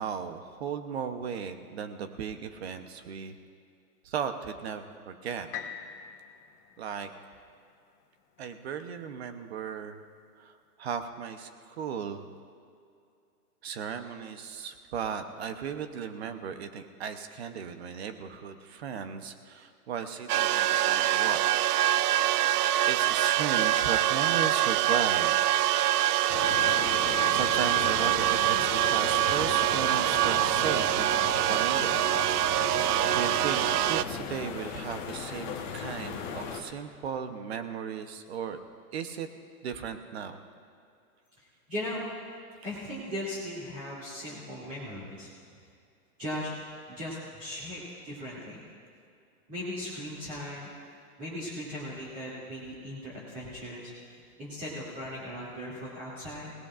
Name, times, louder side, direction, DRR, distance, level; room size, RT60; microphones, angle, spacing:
voice 1, 0.0-3.4 4.0-5.5 6.8-7.1 8.4-10.0 10.4-12.2 13.6-21.4 22.4-25.7 27.0-27.1 27.3-28.6 28.9-31.1 31.5-32.0 32.7-38.6 38.9-39.3 39.6-40.4, right 7 dB, 45° right, 8 dB, 0.9 m, -36 dB
sound 1, 5.5-9.5 10.0-10.1, left 8 dB, 75° left, 1.9 m, -45 dB
sound 2, 20.3-34.0, right 13 dB, 75° right, 0.6 m, -25 dB
sound 3, 26.3-36.6, left 6 dB, 30° left, 1.2 m, -37 dB
voice 2, 41.7-42.0 42.6-45.3 46.2-46.5 46.9-48.6 49.5-50.7 51.2-56.5, left 1 dB, 20° right, -9 dB, 2.7 m, -38 dB
26.5 x 18.0 x 2.5 m, 2.5 s
hypercardioid pair, 170°, 46 cm